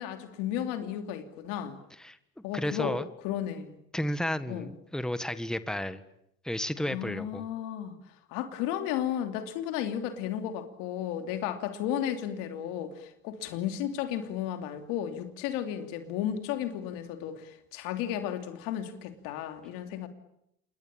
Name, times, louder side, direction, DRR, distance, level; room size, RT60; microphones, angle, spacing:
voice 1, 0.0-1.8 2.4-3.0 3.2-3.8 4.5-4.7 6.8-8.0 8.3-20.1, left 10 dB, 85° left, 2.9 m, -34 dB
voice 2, 2.5-3.1 3.9-6.0 6.4-7.4, left 1 dB, ahead, 1.7 m, -32 dB
28.0 x 22.5 x 9.0 m
supercardioid pair, 80°, 32 cm